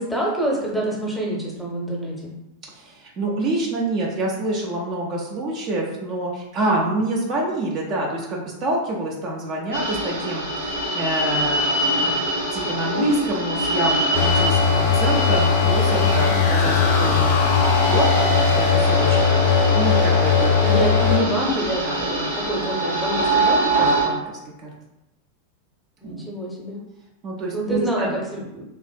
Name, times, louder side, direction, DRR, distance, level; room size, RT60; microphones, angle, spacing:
voice 1, 0.0-2.3 16.0-16.5 20.6-24.1 26.0-26.8 27.5-28.6, right 1 dB, 5° left, -3 dB, 0.8 m, -27 dB
voice 2, 2.7-12.2 12.5-20.6 21.8-22.0 23.7-24.7 26.0-26.2 27.2-28.2, right 2 dB, 35° right, -2 dB, 0.5 m, -27 dB
sound 1, 9.7-24.1, right 1 dB, 80° right, 1.2 m, -24 dB
sound 2, 14.1-21.2, left 6 dB, 45° left, 0.4 m, -19 dB
3.4 x 2.4 x 2.3 m, 0.90 s
figure-of-eight pair, 90°, 0 cm